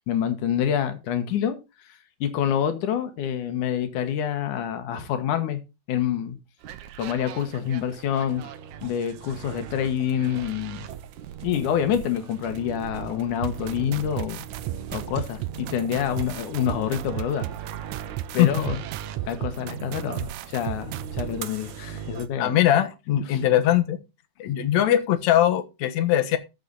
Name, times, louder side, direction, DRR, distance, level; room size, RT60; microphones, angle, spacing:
voice 1, 0.1-1.6 2.2-5.6 5.9-6.4 7.0-8.4 8.8-10.8 11.4-14.4 14.9-17.5 18.3-18.8 19.3-22.5 23.3-23.4, left 9 dB, 90° left, 2.8 m, -27 dB
sound 1, 6.6-22.3, right 9 dB, 75° right, 2.3 m, -39 dB
sound 2, 13.4-21.3, right 14 dB, 90° right, 2.2 m, -33 dB
voice 2, 22.4-24.0 24.4-26.4, left 12 dB, 70° left, 2.5 m, -21 dB
14.0 x 6.8 x 4.0 m
omnidirectional pair, 3.5 m